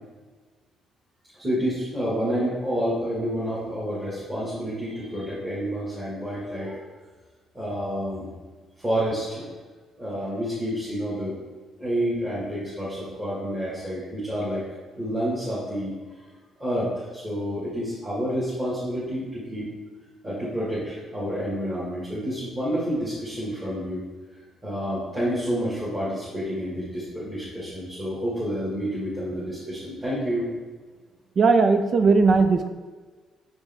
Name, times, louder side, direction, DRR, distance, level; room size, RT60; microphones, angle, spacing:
voice 1, 1.3-6.9 7.5-8.3 8.8-9.5 10.0-11.4 11.8-14.7 15.0-16.0 16.6-19.7 20.2-24.1 24.6-30.5, equal, 15° right, -10 dB, 1.8 m, -29 dB
voice 2, 31.4-32.7, right 4 dB, 40° right, 8 dB, 0.4 m, -18 dB
6.5 x 5.1 x 3.6 m, 1.4 s
cardioid pair, 155°, 0 cm